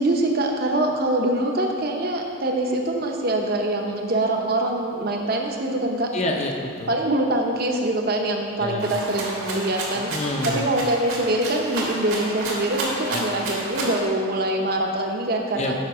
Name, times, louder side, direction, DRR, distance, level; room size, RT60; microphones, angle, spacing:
voice 1, 0.0-6.1 6.9-10.1 10.4-15.7, right 1 dB, 45° right, 2 dB, 0.8 m, -24 dB
voice 2, 6.1-6.9 8.6-9.0 9.9-10.6 13.1-13.2 15.5-15.7, left 2 dB, 30° left, 2 dB, 0.7 m, -28 dB
Rattle (instrument), 8.8-14.0, right 2 dB, 80° right, 1.8 m, -30 dB
7.4 x 5.9 x 4.8 m, 2.2 s
head